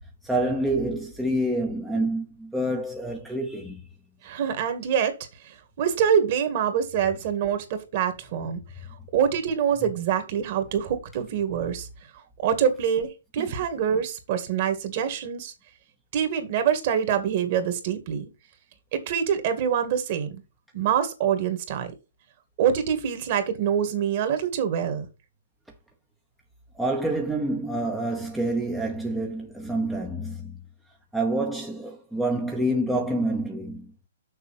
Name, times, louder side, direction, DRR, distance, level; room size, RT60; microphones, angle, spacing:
voice 1, 0.2-3.8 13.4-13.5 26.8-30.5 31.1-33.9, right 1 dB, ahead, 0.9 m, -27 dB
voice 2, 4.2-5.1 5.4-8.6 9.1-11.9 12.4-15.5 16.1-18.3 18.9-20.4 20.7-21.9 22.6-25.1, right 8 dB, 40° right, 1.9 m, -25 dB
6.7 x 5.9 x 5.8 m
hypercardioid pair, 160°, 0 cm